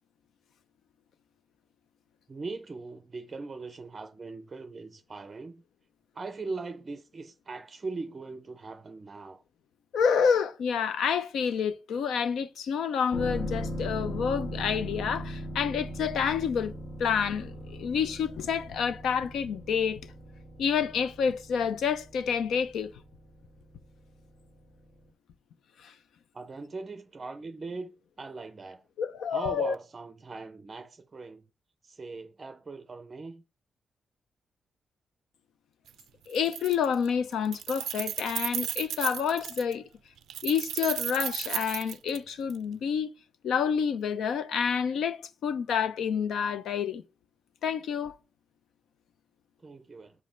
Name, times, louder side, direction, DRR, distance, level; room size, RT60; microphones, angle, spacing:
voice 1, 2.3-5.6 6.1-9.4 26.3-28.8 29.3-31.5 31.8-33.4 49.6-50.1, right 3 dB, 25° right, 0.5 m, -40 dB
voice 2, 9.9-16.7 17.0-20.0 20.6-22.9 25.8-25.9 29.0-29.7 36.3-39.8 40.4-43.1 43.4-47.0 47.6-48.1, left 7 dB, 85° left, 0.6 m, -28 dB
sound 1, 13.1-24.7 25.0-25.1, equal, 55° left, 1.4 m, -39 dB
Keys jangling, 35.9-36.0 36.3-37.1 37.3-39.7 40.3-42.6, right 10 dB, 85° right, 0.3 m, -34 dB
6.2 x 5.2 x 5.6 m
wide cardioid pair, 160°, 0 cm